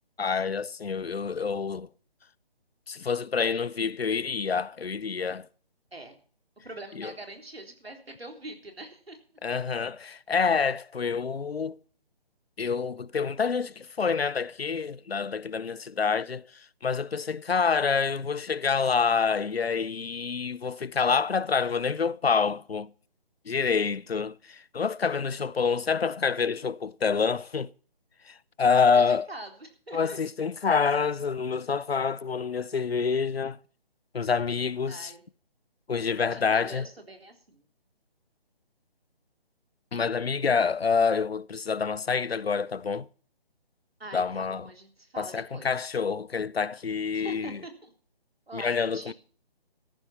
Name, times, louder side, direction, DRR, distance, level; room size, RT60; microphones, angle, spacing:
voice 1, 0.2-1.9 2.9-5.5 7.0-7.1 9.4-11.7 12.6-22.9 23.5-27.7 28.3-29.3 29.9-33.6 34.1-35.1 35.9-36.9 39.9-43.1 44.1-44.6 45.2-47.6 48.5-49.1, left 5 dB, 85° left, 0.7 m, -27 dB
voice 2, 6.6-9.2 28.8-30.2 34.9-35.2 36.1-37.6 44.0-45.7 47.1-47.9 48.5-49.1, right 2 dB, 85° right, 3.7 m, -43 dB
14.0 x 11.0 x 4.3 m
figure-of-eight pair, 150°, 30 cm